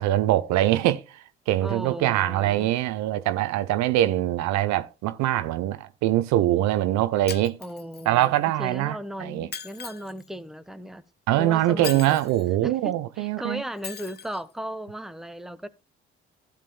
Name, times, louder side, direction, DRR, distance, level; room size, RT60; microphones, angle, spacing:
voice 1, 0.0-7.6 8.1-9.5 11.3-13.6, right 14 dB, 65° right, 0.8 m, -23 dB
voice 2, 1.6-2.7 7.6-11.0 11.4-12.2 12.6-15.7, equal, ahead, 1.1 m, -36 dB
Shatter, 7.3-8.3 9.5-10.3 11.8-12.5 13.8-14.4, left 7 dB, 35° left, 0.9 m, -38 dB
15.5 x 7.4 x 2.2 m
hypercardioid pair, 50°, 30 cm